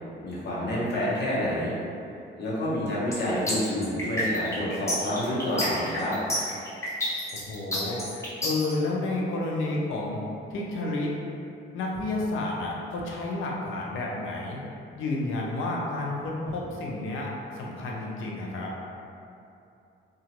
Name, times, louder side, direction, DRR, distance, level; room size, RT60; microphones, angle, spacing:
voice 1, 0.2-1.7 2.4-6.2, left 1 dB, 60° left, -7 dB, 0.9 m, -28 dB
sound 1, 3.1-8.7, left 1 dB, 15° left, 0.9 m, -29 dB
voice 2, 7.3-10.2 10.5-11.2 11.7-14.6 14.9-18.7, left 2 dB, 80° left, -3 dB, 0.6 m, -31 dB
2.9 x 2.4 x 2.9 m, 2.6 s
cardioid pair, 90°, 20 cm